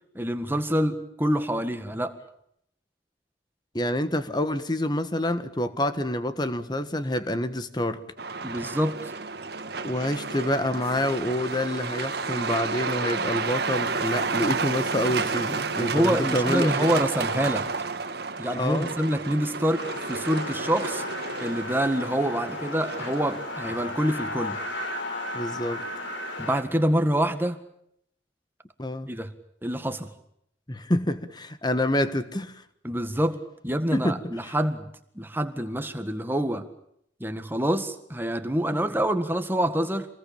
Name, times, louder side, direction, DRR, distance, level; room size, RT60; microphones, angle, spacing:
voice 1, 0.2-2.1 8.4-9.1 15.8-17.7 18.4-21.0 21.4-24.6 26.4-27.6 29.1-29.3 29.6-30.1 32.8-33.4 33.6-34.9 35.2-36.7 37.2-40.1, equal, 10° right, 1.7 m, -26 dB
voice 2, 3.7-8.0 9.8-16.9 18.6-18.9 25.3-25.8 28.8-29.1 30.7-32.6 33.9-34.5, left 1 dB, 20° left, 1.5 m, -27 dB
Truck, 8.2-24.0, right 4 dB, 55° right, 1.6 m, -31 dB
sound 1, 19.8-26.6, left 2 dB, 80° left, 4.8 m, -35 dB
27.0 x 20.5 x 8.7 m
head